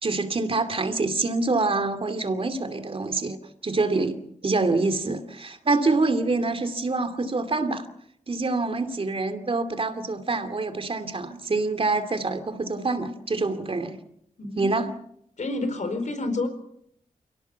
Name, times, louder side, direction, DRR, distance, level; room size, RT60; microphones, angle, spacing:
voice 1, 0.0-3.4 3.6-7.9 8.3-14.0 14.6-14.9, right 3 dB, 45° right, 9 dB, 2.6 m, -26 dB
voice 2, 14.4-14.7 15.4-16.5, left 2 dB, 65° left, 9 dB, 4.4 m, -28 dB
29.0 x 18.0 x 7.1 m, 0.71 s
wide cardioid pair, 140°, 14 cm